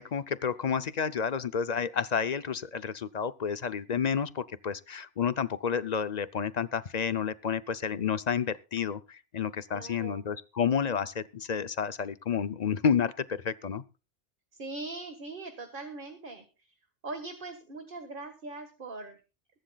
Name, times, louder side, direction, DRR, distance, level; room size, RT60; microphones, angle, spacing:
voice 1, 0.0-13.8, left 7 dB, 45° left, 0.7 m, -30 dB
voice 2, 9.7-10.2 14.5-16.7 17.0-19.2, right 3 dB, 45° right, 1.8 m, -41 dB
22.0 x 11.5 x 2.3 m
omnidirectional pair, 1.2 m